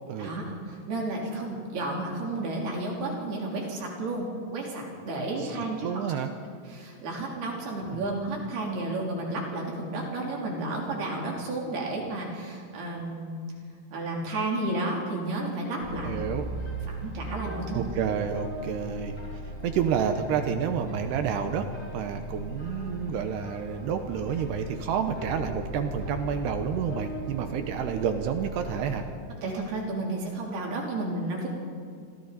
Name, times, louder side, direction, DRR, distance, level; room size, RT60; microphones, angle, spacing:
voice 1, 0.2-5.9 6.7-13.4 13.9-16.2 16.9-17.9 29.4-31.5, right 2 dB, 55° right, -2 dB, 5.2 m, -32 dB
voice 2, 5.8-6.3 7.9-8.0 16.0-16.5 17.7-19.2 19.6-29.1, right 8 dB, 75° right, 7 dB, 2.7 m, -29 dB
sound 1, 15.8-29.1, equal, 20° left, 4.6 m, -38 dB
27.5 x 25.0 x 4.2 m, 2.2 s
omnidirectional pair, 5.5 m